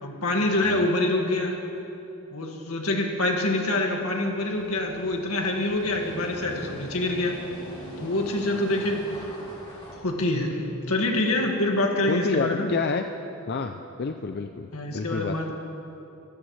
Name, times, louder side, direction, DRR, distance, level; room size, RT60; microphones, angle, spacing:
voice 1, 0.0-1.5 2.3-7.4 8.0-9.0 9.9-12.7 14.7-15.5, left 2 dB, 80° left, 1 dB, 2.0 m, -26 dB
sound 1, 4.4-9.9, equal, 25° left, 3.1 m, -42 dB
voice 2, 12.1-13.0 13.5-15.5, left 4 dB, 50° left, 6 dB, 0.5 m, -29 dB
24.0 x 15.0 x 3.3 m, 2.9 s
head